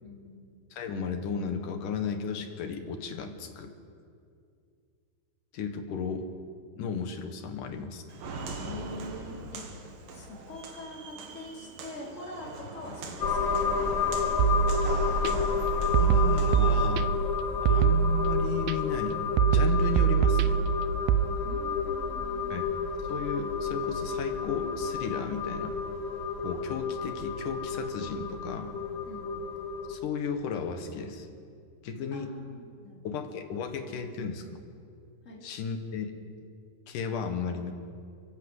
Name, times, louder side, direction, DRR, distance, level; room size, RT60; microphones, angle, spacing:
voice 1, 0.0-0.6 8.5-9.6 10.1-14.5 21.4-22.6 29.1-29.5 32.1-33.2 35.2-35.4, left 1 dB, 20° left, -4 dB, 4.0 m, -44 dB
voice 2, 0.7-3.7 5.5-6.3 6.8-8.0 15.8-17.2 17.6-20.6 22.5-22.7 23.1-25.8 26.4-28.8 29.9-31.3 31.8-32.3 33.0-34.5 35.4-36.1 36.9-37.7, left 6 dB, 60° left, 6 dB, 2.6 m, -34 dB
Walk footsteps, 8.1-16.9, right 3 dB, 60° right, 3.4 m, -41 dB
sound 1, 13.2-29.9, left 5 dB, 85° left, 1.0 m, -31 dB
sound 2, 14.4-15.3 15.9-17.3 17.7-18.7 19.4-21.3, right 8 dB, 80° right, 2.3 m, -24 dB
29.5 x 11.5 x 8.1 m, 2.3 s
omnidirectional pair, 4.7 m